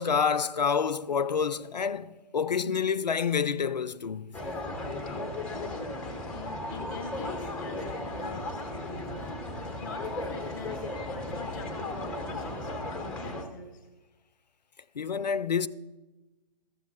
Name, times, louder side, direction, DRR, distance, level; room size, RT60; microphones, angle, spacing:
voice 1, 0.0-4.4 14.9-15.7, left 6 dB, 80° left, 0.5 m, -28 dB
sound 1, 4.3-13.4, left 2 dB, 5° left, 0.8 m, -36 dB
voice 2, 5.1-5.8 6.3-9.3 9.6-13.9, left 3 dB, 30° left, 0.9 m, -44 dB
13.5 x 7.3 x 4.2 m
figure-of-eight pair, 135°, 21 cm